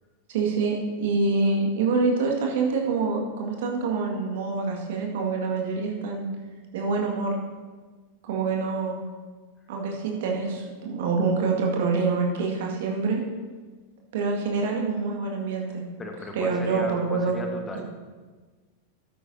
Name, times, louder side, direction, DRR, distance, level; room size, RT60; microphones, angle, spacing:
voice 1, 0.3-6.3 6.7-7.4 8.2-9.0 9.7-13.2 14.1-15.8 16.3-17.3 17.7-17.8, right 4 dB, 55° right, 0 dB, 1.9 m, -26 dB
voice 2, 16.0-17.8, left 2 dB, 15° left, 2 dB, 1.3 m, -35 dB
13.5 x 9.9 x 2.8 m, 1.4 s
figure-of-eight pair, 90°, 0 cm